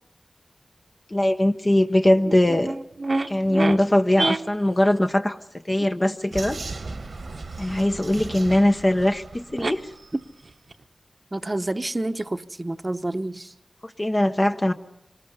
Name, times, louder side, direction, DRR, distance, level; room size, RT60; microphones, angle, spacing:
voice 1, 1.1-2.8 3.3-5.4 5.7-6.6 7.6-9.8 13.8-14.7, left 1 dB, 30° left, 0.9 m, -21 dB
sound 1, 1.8-1.9 2.2-3.8 4.1-5.0 5.7-5.9 8.5-8.6 8.8-8.9 9.6-9.7 10.2-10.8, right 3 dB, 60° right, 0.9 m, -28 dB
Vehicle, 6.3-10.2, right 3 dB, 80° right, 1.3 m, -37 dB
voice 2, 11.3-13.5, right 2 dB, 30° right, 0.9 m, -28 dB
26.0 x 20.0 x 5.5 m
wide cardioid pair, 55°, 0 cm